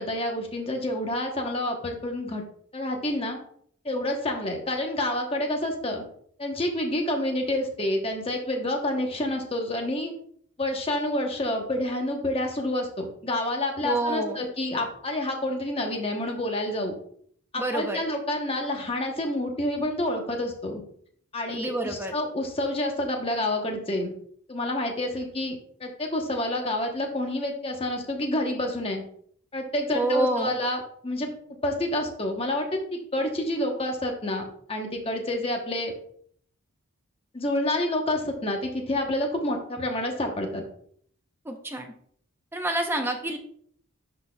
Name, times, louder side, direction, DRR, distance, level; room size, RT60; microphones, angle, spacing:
voice 1, 0.0-2.4 2.7-3.4 3.8-6.0 6.4-10.1 10.6-16.9 17.5-20.8 21.3-24.1 24.5-29.0 29.5-31.3 31.6-35.9 37.3-40.6, left 1 dB, 25° left, 2 dB, 0.9 m, -28 dB
voice 2, 13.8-14.4 17.5-18.0 21.5-22.1 29.9-30.5 41.5-41.9 42.5-43.4, right 2 dB, 10° right, 4 dB, 0.7 m, -28 dB
10.5 x 4.1 x 2.3 m, 0.62 s
head